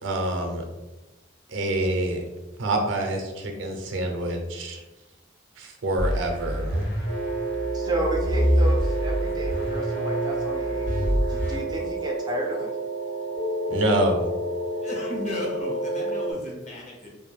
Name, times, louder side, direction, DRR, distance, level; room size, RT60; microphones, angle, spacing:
voice 1, 0.0-0.6 1.5-2.2 2.6-4.8 5.6-6.9 13.7-14.3, right 1 dB, 80° right, 3 dB, 0.5 m, -26 dB
sound 1, 6.0-11.6, equal, 75° left, 1.1 m, -26 dB
sound 2, 7.0-16.3, right 2 dB, 60° left, 1.0 m, -30 dB
voice 2, 7.7-12.7, equal, 20° right, 0 dB, 0.3 m, -32 dB
voice 3, 14.8-17.1, left 1 dB, 35° left, -2 dB, 0.6 m, -35 dB
2.5 x 2.2 x 3.1 m, 1.1 s
head